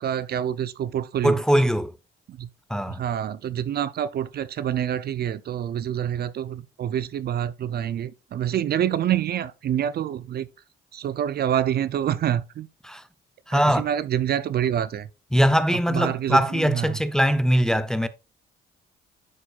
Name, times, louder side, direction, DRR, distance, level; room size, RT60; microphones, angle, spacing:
voice 1, 0.0-1.4 2.3-2.5 2.9-10.5 10.9-12.7 13.5-15.1 15.9-17.0, right 10 dB, 55° right, 0.4 m, -27 dB
voice 2, 1.2-1.9 2.7-3.0 12.8-13.0 13.5-13.9 15.3-18.1, equal, 5° left, 0.5 m, -21 dB
11.0 x 4.5 x 2.3 m
cardioid pair, 90°, 20 cm